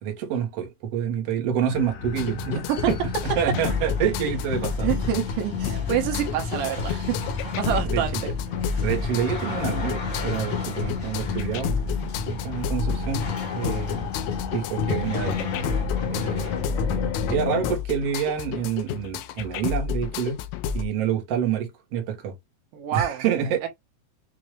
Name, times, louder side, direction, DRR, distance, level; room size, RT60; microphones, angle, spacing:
voice 1, 0.0-2.6 2.9-3.0 3.2-4.9 7.7-8.3 8.8-11.7 12.3-14.1 14.5-15.5 16.1-16.6 17.3-20.4 20.7-22.3 22.9-23.7, right 8 dB, 55° right, 2.0 m, -27 dB
sound 1, 1.7-17.7, left 5 dB, 65° left, 1.9 m, -31 dB
sound 2, 2.2-20.9, left 7 dB, 90° left, 2.4 m, -31 dB
sound 3, 2.4-17.5, left 3 dB, 45° left, 1.6 m, -39 dB
voice 2, 4.8-7.3 7.6-8.3 22.7-23.2 23.6-23.7, right 10 dB, 80° right, 2.6 m, -27 dB
6.4 x 2.6 x 3.1 m
omnidirectional pair, 3.9 m